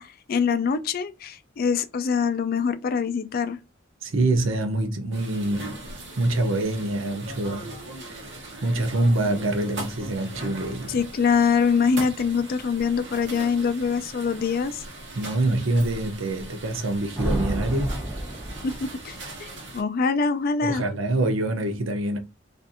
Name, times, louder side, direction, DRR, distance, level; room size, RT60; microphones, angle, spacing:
voice 1, 0.0-3.6 10.9-14.8 18.6-19.5 19.7-20.8, left 5 dB, 50° left, 0.3 m, -24 dB
voice 2, 4.0-5.8 6.2-7.7 8.0-8.3 8.6-11.0 15.2-18.0 20.6-22.2, right 2 dB, 90° right, 0.7 m, -25 dB
sound 1, 5.1-19.8, right 2 dB, 65° right, 0.9 m, -40 dB
sound 2, 17.2-19.1, right 1 dB, 10° right, 1.1 m, -29 dB
2.5 x 2.4 x 2.6 m
head